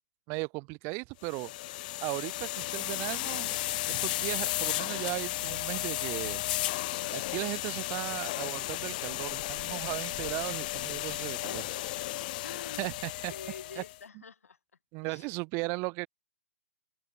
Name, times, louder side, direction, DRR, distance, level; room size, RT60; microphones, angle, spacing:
voice 1, 0.3-1.5 2.0-3.6 3.9-6.4 7.1-11.6 12.8-13.3 13.8-13.9 14.9-16.1, right 30 dB, 30° right, 2.6 m, -36 dB
sound 1, 1.2-14.0, left 18 dB, 35° left, 0.4 m, -34 dB
voice 2, 11.5-12.1 12.4-12.9 13.3-14.6 15.0-15.3, left 6 dB, 85° left, 3.5 m, -47 dB
hypercardioid pair, 145°, 8 cm